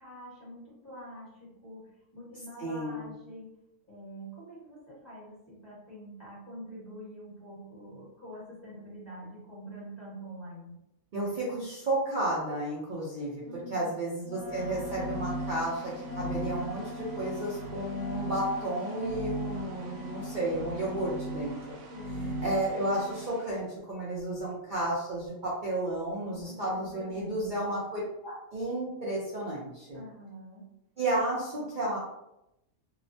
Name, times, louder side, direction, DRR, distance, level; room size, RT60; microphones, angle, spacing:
voice 1, 0.0-3.5 3.9-10.7 13.4-14.0 21.9-22.4 26.1-27.8 29.9-30.6, equal, 10° left, -10 dB, 1.0 m, -46 dB
voice 2, 2.6-3.1 11.1-13.4 13.7-21.8 22.4-30.0 31.0-32.0, right 1 dB, 65° right, -7 dB, 0.5 m, -32 dB
Wind instrument woodwind instrument, 14.2-21.1, left 4 dB, 80° left, 1.1 m, -45 dB
sound 1, 14.4-23.5, right 1 dB, 85° right, 1.1 m, -38 dB
2.8 x 2.0 x 2.6 m, 0.85 s
omnidirectional pair, 1.5 m